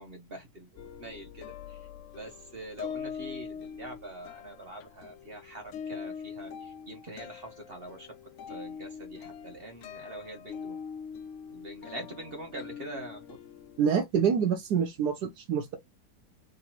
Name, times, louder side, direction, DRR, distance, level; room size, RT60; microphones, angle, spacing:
voice 1, 0.0-1.9 2.1-8.1 8.5-10.8 11.5-13.2, right 1 dB, 40° right, 1.0 m, -44 dB
sound 1, 0.8-13.8, left 7 dB, 75° left, 0.7 m, -43 dB
voice 2, 13.8-15.8, right 7 dB, 75° right, 1.3 m, -26 dB
3.9 x 2.7 x 4.3 m
omnidirectional pair, 1.8 m